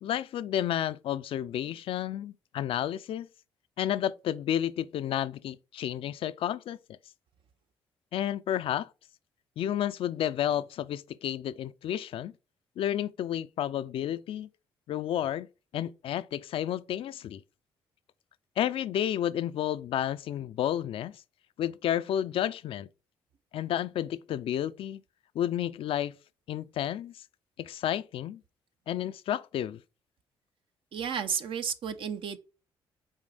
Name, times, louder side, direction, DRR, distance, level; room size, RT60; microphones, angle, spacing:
voice 1, 0.0-3.3 3.8-7.0 8.1-8.9 9.6-12.3 12.8-14.5 14.9-15.5 15.7-17.4 18.6-21.2 21.6-22.9 23.5-25.0 25.3-26.2 26.5-27.2 27.6-28.4 28.9-29.8, left 11 dB, 70° left, 0.5 m, -31 dB
voice 2, 30.9-32.4, right 7 dB, 65° right, 0.9 m, -32 dB
6.3 x 4.2 x 4.0 m
supercardioid pair, 65°, 10 cm